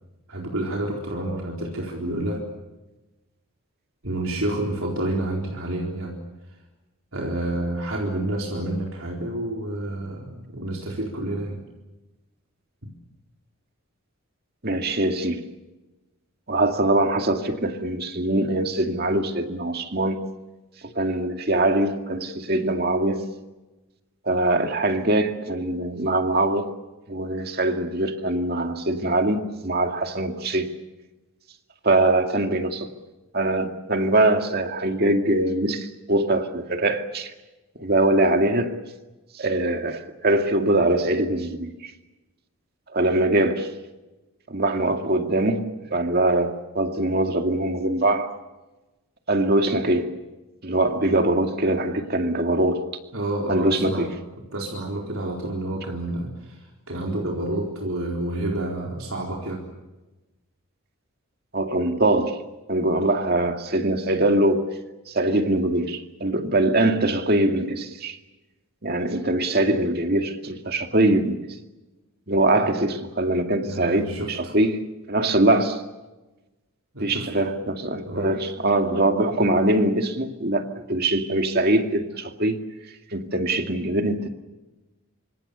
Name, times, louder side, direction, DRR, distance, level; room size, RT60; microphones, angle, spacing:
voice 1, 0.3-2.4 4.0-6.2 7.1-11.6 12.8-12.9 53.1-54.1 54.5-59.6 73.6-74.6 76.9-77.3 78.1-78.3, right 1 dB, 70° right, 4.2 m, -29 dB
voice 2, 14.6-15.4 16.5-20.2 20.8-23.2 24.3-26.7 27.1-30.7 31.8-32.9 33.3-37.3 37.8-38.8 39.4-41.9 42.9-43.7 44.5-48.3 49.3-50.2 50.6-52.8 53.5-54.1 61.5-62.4 62.7-64.7 65.1-68.2 68.8-71.4 72.3-75.8 77.0-82.6 83.1-84.3, right 1 dB, 45° right, 2.2 m, -22 dB
27.0 x 25.5 x 7.0 m
head